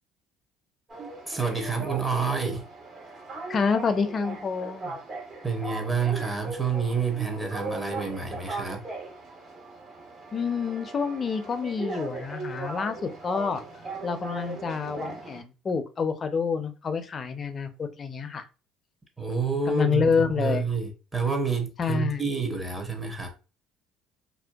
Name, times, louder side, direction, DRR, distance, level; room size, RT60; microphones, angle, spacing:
sound 1, 0.9-15.4, right 3 dB, 50° right, 1.2 m, -39 dB
voice 1, 1.0-2.7 5.4-8.8 19.2-23.3, right 5 dB, 20° right, 0.8 m, -28 dB
voice 2, 3.5-5.0 10.3-13.6 14.0-18.5 19.7-20.6 21.8-22.2, left 5 dB, 40° left, 0.4 m, -28 dB
2.5 x 2.2 x 2.2 m
supercardioid pair, 80°, 0 cm